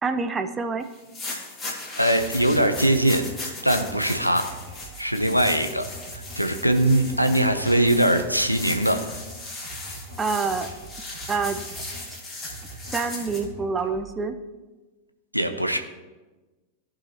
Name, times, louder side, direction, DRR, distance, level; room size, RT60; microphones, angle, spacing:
voice 1, 0.0-0.9 10.2-10.7 11.3-11.6 12.9-14.4, right 4 dB, 20° right, 9 dB, 0.6 m, -26 dB
sound 1, 0.9-13.4, left 2 dB, 15° left, 2.1 m, -37 dB
voice 2, 2.0-3.2 3.6-4.5 5.0-9.0 15.3-15.8, right 1 dB, 90° right, 7 dB, 0.6 m, -21 dB
sound 2, 2.1-12.1 12.4-14.2, right 3 dB, 55° right, 1.5 m, -43 dB
14.5 x 4.9 x 2.9 m, 1.2 s
figure-of-eight pair, 90°, 0 cm